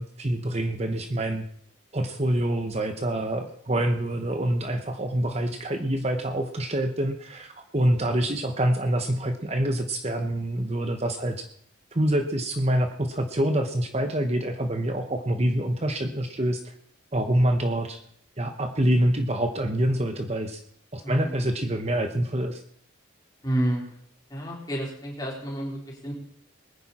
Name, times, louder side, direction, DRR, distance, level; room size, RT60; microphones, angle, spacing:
voice 1, 0.0-1.5 1.9-11.5 11.9-16.7 17.1-18.0 18.4-20.6 20.9-22.6, right 1 dB, 30° right, 6 dB, 1.0 m, -26 dB
voice 2, 21.0-21.4 23.4-23.8 24.3-26.1, right 1 dB, 20° left, -3 dB, 4.1 m, -30 dB
22.0 x 10.0 x 4.3 m, 0.65 s
head